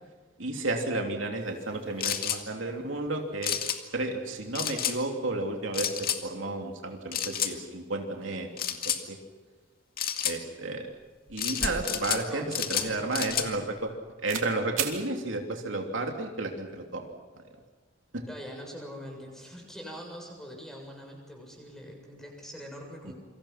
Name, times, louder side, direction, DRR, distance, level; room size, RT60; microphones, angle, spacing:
voice 1, 0.4-3.6 3.9-8.5 8.8-9.2 10.2-10.9 11.3-13.9 14.2-17.1 17.4-17.5 23.0-23.1, right 2 dB, 75° right, 2 dB, 3.0 m, -32 dB
sound 1, 2.0-2.4 3.4-3.8 4.6-5.0 5.7-6.2 7.1-7.5 8.6-9.0 10.0-10.4 11.4-12.2 12.5-13.5, left 9 dB, 50° left, 2.2 m, -30 dB
sound 2, 11.3-13.9 14.3-14.5 14.8-15.0, right 6 dB, 90° right, 3.2 m, -36 dB
voice 2, 12.3-13.4 18.3-23.1, equal, ahead, 0 dB, 7.2 m, -43 dB
28.5 x 25.0 x 5.9 m, 1.4 s
head